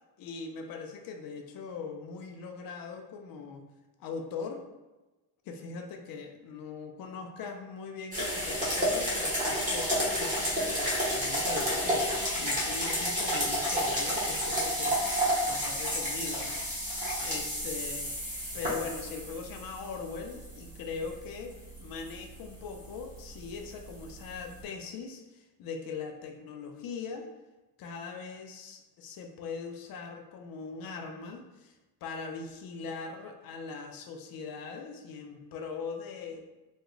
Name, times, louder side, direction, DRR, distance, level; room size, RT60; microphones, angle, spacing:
voice 1, 0.2-3.6 4.0-4.7 5.5-27.3 27.8-36.4, left 5 dB, 65° left, 4 dB, 0.6 m, -41 dB
sound 1, 8.1-24.6, equal, 20° right, 1.0 m, -31 dB
3.0 x 2.1 x 3.7 m, 1.1 s
cardioid pair, 135°, 38 cm